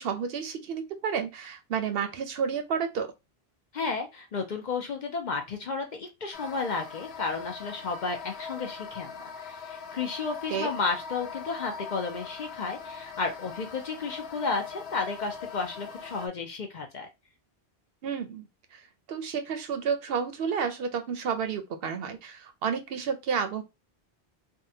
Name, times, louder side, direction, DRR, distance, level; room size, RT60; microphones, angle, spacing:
voice 1, 0.0-3.1 10.5-10.7 18.0-18.8 19.1-23.6, right 6 dB, 70° right, 0.7 m, -31 dB
voice 2, 3.7-17.1, left 4 dB, 50° left, 0.6 m, -33 dB
sound 1, 6.3-16.3, left 6 dB, 75° left, 0.9 m, -41 dB
3.6 x 2.1 x 2.7 m
omnidirectional pair, 1.1 m